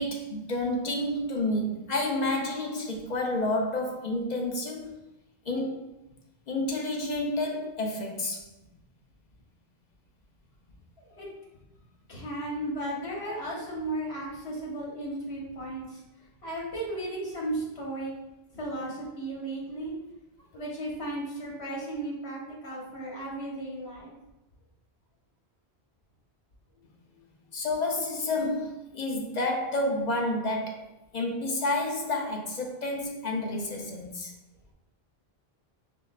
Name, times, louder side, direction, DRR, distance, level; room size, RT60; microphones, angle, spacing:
voice 1, 0.0-5.0 5.5-5.8 6.5-8.4 27.5-34.3, left 2 dB, 50° left, 1 dB, 0.6 m, -30 dB
voice 2, 12.1-16.0 16.4-18.1 18.5-20.0 20.5-24.1 27.1-27.2, right 1 dB, 85° left, -4 dB, 1.5 m, -35 dB
5.0 x 3.3 x 2.3 m, 0.95 s
omnidirectional pair, 1.1 m